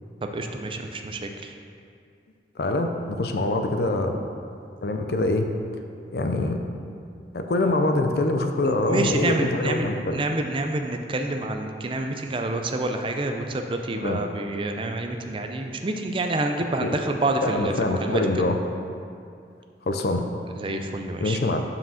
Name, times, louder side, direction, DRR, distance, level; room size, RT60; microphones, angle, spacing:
voice 1, 0.2-1.5 8.6-18.4 20.6-21.4, right 2 dB, 30° right, 4 dB, 0.4 m, -28 dB
voice 2, 2.6-4.2 4.8-5.5 6.1-6.6 7.3-10.2 14.0-14.2 16.8-17.0 17.4-18.6 19.9-20.2 21.2-21.6, left 2 dB, 60° left, 5 dB, 0.5 m, -24 dB
5.7 x 5.0 x 6.3 m, 2.4 s
head